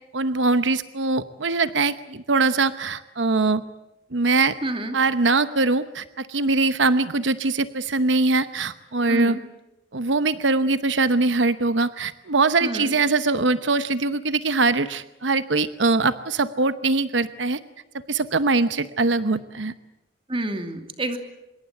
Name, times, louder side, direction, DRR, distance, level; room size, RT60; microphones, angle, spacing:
voice 1, 0.1-3.6 4.1-4.6 4.9-9.4 9.9-17.6 18.1-19.7, right 3 dB, 90° right, 12 dB, 0.9 m, -22 dB
voice 2, 4.6-5.0 9.1-9.4 12.6-12.9 20.3-21.2, right 1 dB, 30° right, 6 dB, 2.6 m, -28 dB
25.5 x 22.0 x 8.2 m, 0.92 s
head